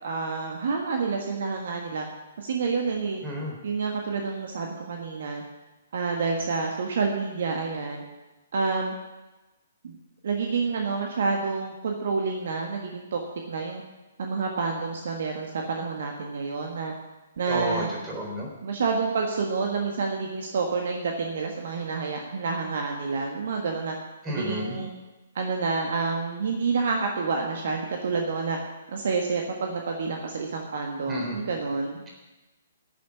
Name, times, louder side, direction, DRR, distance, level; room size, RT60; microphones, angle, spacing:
voice 1, 0.0-2.1 2.4-3.2 3.6-5.4 5.9-8.0 8.5-9.0 9.8-10.0 10.2-13.2 13.5-13.8 14.2-16.9 17.4-17.9 18.6-23.9 24.3-24.9 25.3-28.6 28.9-32.0, right 4 dB, 50° right, 2 dB, 1.5 m, -28 dB
voice 2, 3.2-3.6 17.5-18.5 24.2-24.8 31.1-31.4, equal, 15° right, -2 dB, 4.0 m, -31 dB
11.0 x 7.0 x 9.5 m, 1.1 s
figure-of-eight pair, 125°, 0 cm